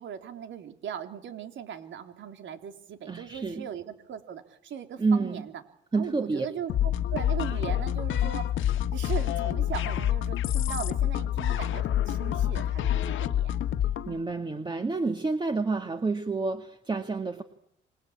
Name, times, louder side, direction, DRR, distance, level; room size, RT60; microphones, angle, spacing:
voice 1, 0.0-5.4 5.9-8.4 8.9-13.6, right 9 dB, 70° right, 7 dB, 3.4 m, -39 dB
voice 2, 3.1-3.7 5.0-5.5 5.9-6.5 14.1-17.4, right 3 dB, 25° right, 6 dB, 2.2 m, -29 dB
sound 1, 6.7-14.1, left 11 dB, 80° left, 1.6 m, -27 dB
27.0 x 20.5 x 8.7 m, 0.70 s
cardioid pair, 90°, 20 cm